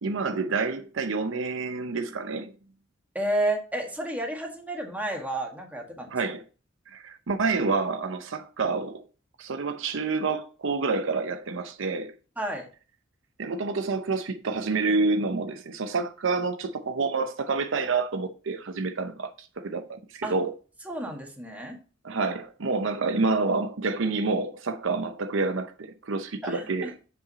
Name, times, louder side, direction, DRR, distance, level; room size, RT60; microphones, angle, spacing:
voice 1, 0.0-2.5 6.1-6.4 6.9-9.0 9.4-12.1 13.4-20.5 22.0-26.9, right 4 dB, 70° right, 0.7 m, -28 dB
voice 2, 3.1-6.1 12.4-12.7 20.2-20.3 20.8-21.8 26.4-26.9, right 1 dB, 10° right, 1.6 m, -31 dB
7.5 x 5.8 x 4.0 m
head